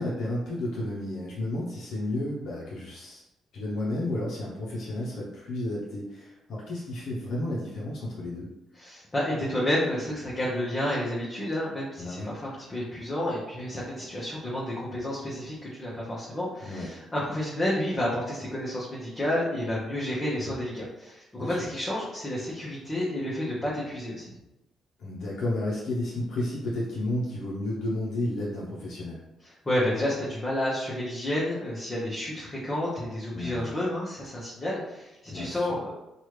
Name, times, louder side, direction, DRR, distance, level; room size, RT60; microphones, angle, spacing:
voice 1, 0.0-3.2 3.5-8.5 12.0-12.3 16.6-16.9 21.4-21.7 25.0-29.2 33.3-33.7 35.3-35.7, left 1 dB, 70° left, -6 dB, 0.7 m, -32 dB
voice 2, 8.8-24.3 29.4-35.9, left 1 dB, 25° left, -7 dB, 0.9 m, -30 dB
3.0 x 2.4 x 3.2 m, 0.92 s
cardioid pair, 90°, 0 cm